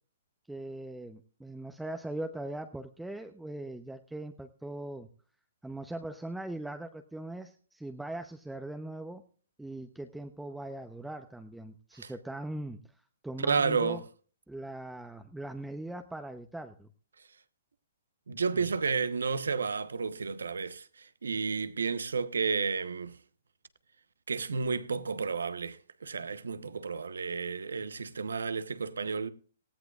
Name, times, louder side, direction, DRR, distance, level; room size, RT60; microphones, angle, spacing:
voice 1, 0.5-5.1 5.6-9.2 9.6-12.8 13.2-14.0 14.5-16.9 18.3-18.6, right 1 dB, 5° right, 0.8 m, -40 dB
voice 2, 13.5-14.0 18.3-23.2 24.3-29.3, right 5 dB, 85° right, 1.0 m, -31 dB
18.5 x 14.5 x 2.4 m
hypercardioid pair, 135°, 0 cm